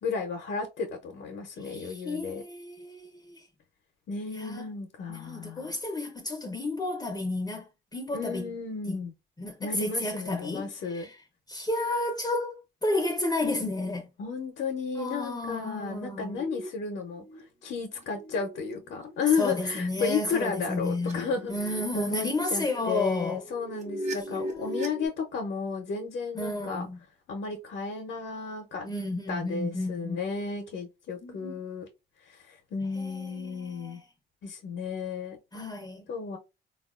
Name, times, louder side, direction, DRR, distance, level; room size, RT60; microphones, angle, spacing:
voice 1, 0.0-2.4 4.1-5.8 8.1-9.1 9.6-11.1 14.2-26.9 27.3-28.9 29.3-31.9 32.2-34.0 34.4-35.6 36.1-36.4, left 5 dB, 60° left, 0.7 m, -33 dB
voice 2, 1.6-3.5 4.3-4.6 5.1-7.7 7.9-8.5 8.9-9.0 9.4-11.1 11.5-14.1 15.0-16.4 19.4-21.2 21.5-23.4 24.3-24.8 26.3-27.0 28.8-30.2 31.2-31.6 32.9-34.0 35.5-36.1, left 2 dB, 20° left, 0.6 m, -32 dB
sound 1, 16.3-16.7 16.9-17.4 17.9-22.9 23.3-25.1, equal, 35° right, 0.8 m, -40 dB
3.4 x 2.3 x 2.3 m
cardioid pair, 90°, 20 cm